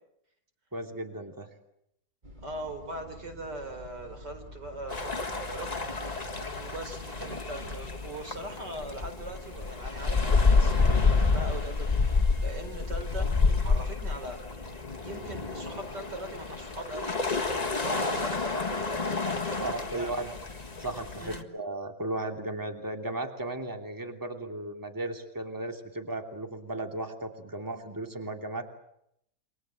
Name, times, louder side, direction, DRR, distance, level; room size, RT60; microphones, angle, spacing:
voice 1, 0.7-1.5 19.6-20.3 20.8-28.7, right 2 dB, 10° right, 4 dB, 2.9 m, -35 dB
sound 1, 2.2-8.1, equal, 25° right, 3.3 m, -46 dB
voice 2, 2.4-5.7 6.5-13.3 13.6-14.4 15.0-17.1 17.5-20.1 21.2-21.5, right 1 dB, 90° right, 7 dB, 5.1 m, -40 dB
sound 2, 4.9-21.4, left 4 dB, 25° left, 1.8 m, -29 dB
28.5 x 25.5 x 7.8 m, 0.76 s
omnidirectional pair, 1.8 m